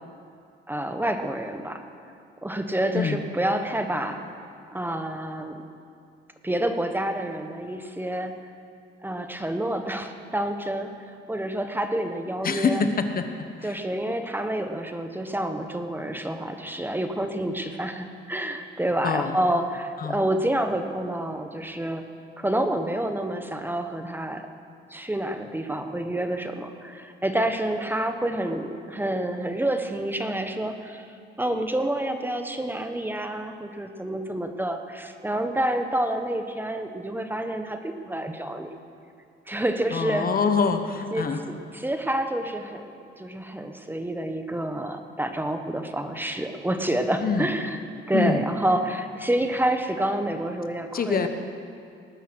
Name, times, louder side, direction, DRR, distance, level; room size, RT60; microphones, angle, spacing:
voice 1, 0.7-1.8 2.4-4.2 4.7-5.6 6.4-8.3 9.0-12.8 13.6-22.0 22.4-24.4 24.9-38.7 39.5-40.3 41.1-47.8 48.1-51.3, right 1 dB, 10° right, 6 dB, 1.2 m, -28 dB
voice 2, 12.4-13.2 13.6-13.8 19.0-19.3 20.0-20.2 39.9-41.4 47.2-47.5 48.1-48.4 50.9-51.3, left 5 dB, 45° left, 8 dB, 1.2 m, -25 dB
19.5 x 10.0 x 6.3 m, 2.4 s
cardioid pair, 90°, 20 cm